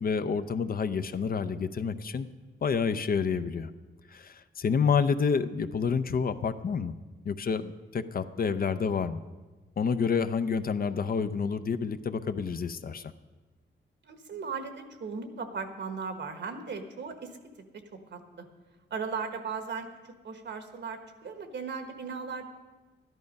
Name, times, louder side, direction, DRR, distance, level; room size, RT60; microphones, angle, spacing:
voice 1, 0.0-2.3 2.6-3.7 4.1-6.9 7.2-9.2 9.8-13.1, left 6 dB, 50° left, 11 dB, 0.6 m, -29 dB
voice 2, 14.0-17.4 17.7-18.5 18.9-22.5, right 5 dB, 70° right, 7 dB, 1.3 m, -37 dB
13.0 x 11.0 x 5.3 m, 1.3 s
wide cardioid pair, 105°, 19 cm